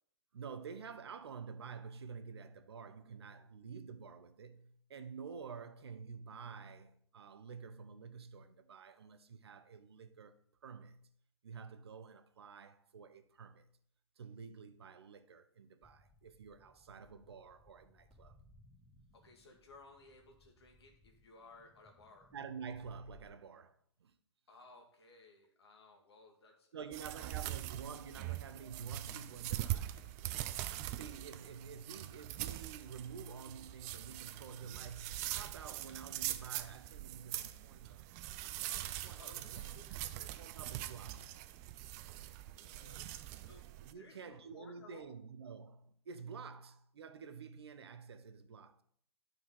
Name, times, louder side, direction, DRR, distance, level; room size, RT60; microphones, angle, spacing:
voice 1, 0.3-11.1 11.4-13.7 14.2-18.4 22.3-24.1 26.7-30.0 30.9-38.0 39.0-39.9 40.4-41.4 41.8-42.0 42.8-43.2 43.8-48.8, right 6 dB, 65° right, 0.8 m, -49 dB
sound 1, 15.8-23.3, left 1 dB, 5° left, 2.1 m, -65 dB
voice 2, 19.1-22.3 24.5-27.5 39.1-40.5 42.1-43.1 43.4-45.1, left 3 dB, 65° left, 1.7 m, -60 dB
sound 2, 26.9-43.9, right 14 dB, 35° right, 0.5 m, -43 dB
9.5 x 4.5 x 5.4 m
figure-of-eight pair, 110°, 14 cm